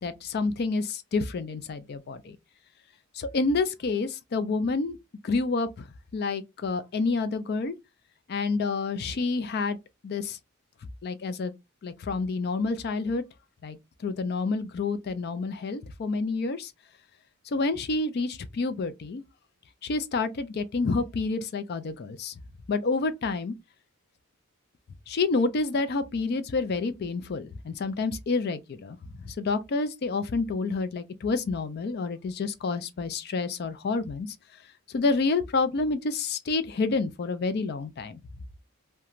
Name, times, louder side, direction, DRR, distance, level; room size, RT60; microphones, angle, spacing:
voice 1, 0.0-2.4 3.1-5.0 5.2-5.9 6.1-7.7 8.3-9.8 10.0-10.4 11.0-11.5 11.8-13.2 13.6-16.7 17.5-19.2 19.8-22.3 22.7-23.5 25.1-29.0 29.2-34.3 34.9-38.2, left 3 dB, 45° left, 0.4 m, -28 dB
2.4 x 2.2 x 2.9 m
head